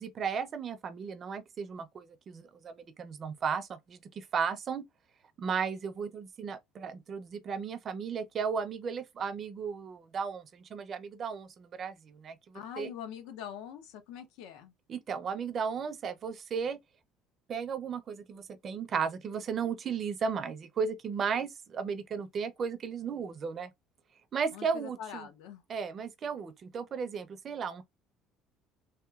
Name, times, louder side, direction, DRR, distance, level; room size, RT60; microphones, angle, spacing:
voice 1, 0.0-4.8 5.4-12.9 14.9-16.8 17.5-23.7 24.3-25.3 25.7-27.8, right 6 dB, 35° right, 0.4 m, -35 dB
voice 2, 12.5-14.7 24.5-25.6, left 9 dB, 85° left, 0.6 m, -43 dB
2.9 x 2.8 x 2.3 m
cardioid pair, 140°, 0 cm